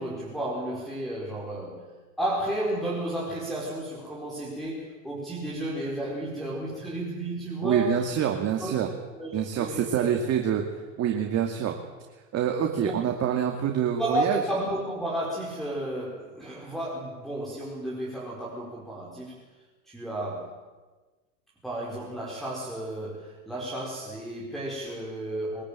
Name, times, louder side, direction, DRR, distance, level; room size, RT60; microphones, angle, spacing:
voice 1, 0.0-1.9 2.2-8.1 8.6-8.7 9.1-10.2 12.8-13.0 14.0-19.4 19.8-20.6 21.6-25.6, right 1 dB, ahead, -3 dB, 4.9 m, -32 dB
voice 2, 7.6-8.9 9.3-10.6 11.0-11.8 12.3-14.4, right 9 dB, 40° right, 3 dB, 2.5 m, -26 dB
23.0 x 13.5 x 9.0 m, 1.3 s
hypercardioid pair, 100°, 38 cm